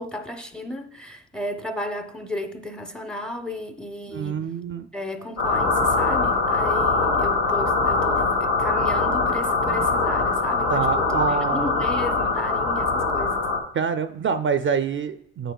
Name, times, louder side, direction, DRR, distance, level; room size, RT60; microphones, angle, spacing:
voice 1, 0.0-4.4 4.9-10.9 11.3-13.4, left 1 dB, 5° left, 0.6 m, -34 dB
voice 2, 4.1-4.9 9.6-9.8 10.7-11.8 13.7-15.5, right 6 dB, 40° right, 0.4 m, -26 dB
sound 1, 5.4-13.6, left 3 dB, 80° left, 1.3 m, -22 dB
9.0 x 6.7 x 2.3 m
cardioid pair, 90°, 30 cm